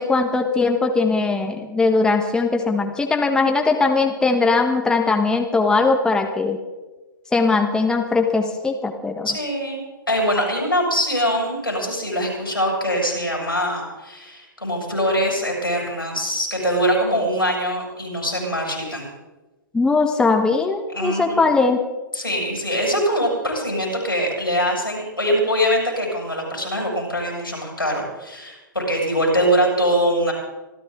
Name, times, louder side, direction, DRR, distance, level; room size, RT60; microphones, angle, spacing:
voice 1, 0.0-6.6 7.3-9.3 19.7-21.8, left 3 dB, 5° left, 4 dB, 1.5 m, -20 dB
voice 2, 9.2-19.1 20.9-21.5 22.1-30.3, equal, 90° left, -2 dB, 7.3 m, -23 dB
25.5 x 14.0 x 3.9 m, 1.2 s
figure-of-eight pair, 115°, 11 cm